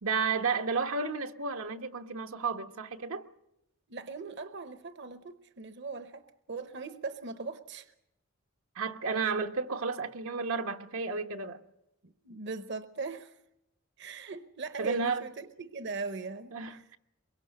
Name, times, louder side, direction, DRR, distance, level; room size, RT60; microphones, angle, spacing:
voice 1, 0.0-3.2 8.7-11.6 14.8-15.2 16.5-17.0, right 5 dB, 85° right, 1.2 m, -32 dB
voice 2, 3.9-7.9 12.0-13.4 14.0-16.8, right 4 dB, 60° right, 0.9 m, -40 dB
23.0 x 23.0 x 6.6 m
head